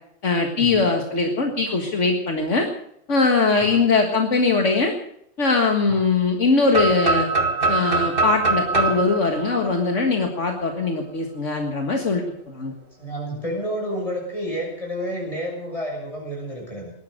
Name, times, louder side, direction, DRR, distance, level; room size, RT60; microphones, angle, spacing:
voice 1, 0.2-2.7 3.1-4.9 5.4-7.3 7.7-12.7, left 4 dB, 70° left, 3 dB, 2.1 m, -21 dB
voice 2, 3.4-3.8 5.9-6.0 13.0-16.9, equal, 25° left, 0 dB, 6.9 m, -30 dB
sound 1, 6.7-10.6, right 3 dB, 45° right, 2.2 m, -23 dB
18.5 x 12.0 x 6.6 m, 0.71 s
omnidirectional pair, 1.3 m